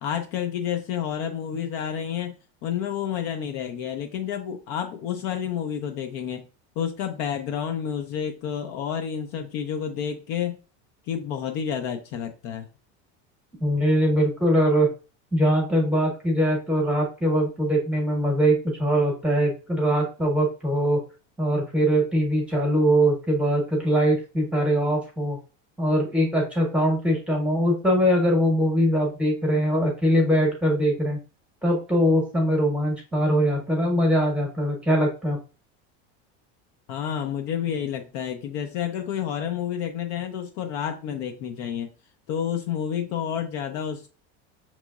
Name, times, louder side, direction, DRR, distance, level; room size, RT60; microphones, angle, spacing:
voice 1, 0.0-6.5 6.8-10.6 11.1-12.7 36.9-41.9 42.3-44.1, left 8 dB, 50° left, 6 dB, 0.5 m, -30 dB
voice 2, 13.6-14.9 15.3-21.0 21.4-25.4 25.8-31.2 31.6-35.4, equal, 5° right, -1 dB, 0.9 m, -22 dB
6.1 x 3.0 x 2.3 m, 0.34 s
cardioid pair, 175°, 33 cm